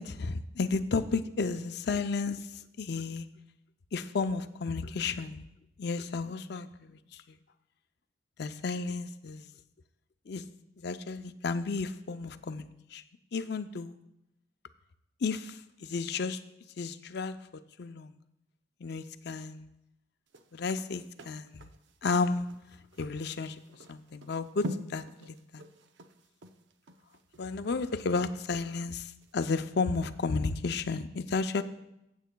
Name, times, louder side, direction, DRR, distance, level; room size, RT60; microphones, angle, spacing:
voice 1, 0.0-2.5 2.8-3.3 3.9-5.4 5.8-7.2 8.4-9.5 10.3-10.5 10.8-13.0 13.3-14.0 15.2-16.4 16.8-17.4 17.8-18.1 18.8-19.7 20.5-21.7 22.0-22.5 23.0-23.6 23.9-25.6 27.4-31.6, left 4 dB, 60° left, 10 dB, 0.5 m, -33 dB
sound 1, 20.3-28.8 29.2-29.3, equal, 70° right, 0.6 m, -45 dB
15.5 x 8.1 x 2.3 m, 0.85 s
head